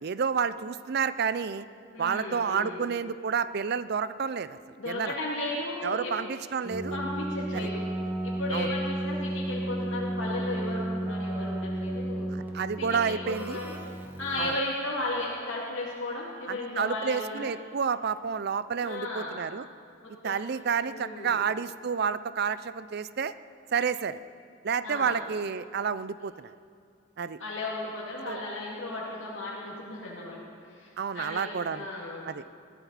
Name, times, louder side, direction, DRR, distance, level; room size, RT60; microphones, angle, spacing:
voice 1, 0.0-1.7 2.0-4.6 4.9-5.1 5.8-7.0 7.5-7.7 8.5-8.7 12.5-13.6 14.4-14.5 16.5-19.6 20.2-23.3 23.7-24.2 24.6-26.5 27.2-27.4 28.3-28.4 31.0-31.9 32.3-32.4, right 6 dB, 50° right, 15 dB, 0.4 m, -30 dB
voice 2, 1.9-2.8 4.8-6.1 6.9-7.8 8.2-12.3 12.8-13.7 14.2-17.5 18.8-19.4 20.0-20.4 20.9-21.4 24.8-25.2 27.4-30.4 30.7-32.3, left 2 dB, 70° left, -6 dB, 2.4 m, -35 dB
Keyboard (musical), 6.6-14.8, right 1 dB, 10° right, 1.1 m, -33 dB
21.0 x 14.5 x 4.1 m, 2.2 s
head